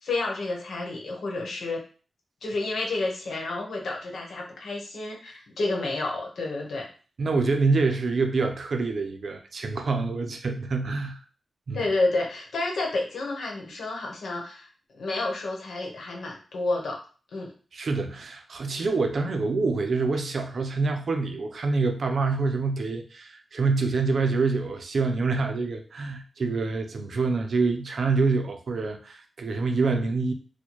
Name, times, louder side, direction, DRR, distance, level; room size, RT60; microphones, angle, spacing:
voice 1, 0.0-1.8 2.4-6.8 11.7-14.7 14.9-17.0 17.3-17.5, left 2 dB, 80° left, 0 dB, 1.0 m, -30 dB
voice 2, 7.2-11.2 11.7-11.8 17.7-30.3, right 4 dB, 55° right, 5 dB, 0.5 m, -26 dB
4.2 x 2.2 x 3.0 m, 0.39 s
wide cardioid pair, 160°, 0 cm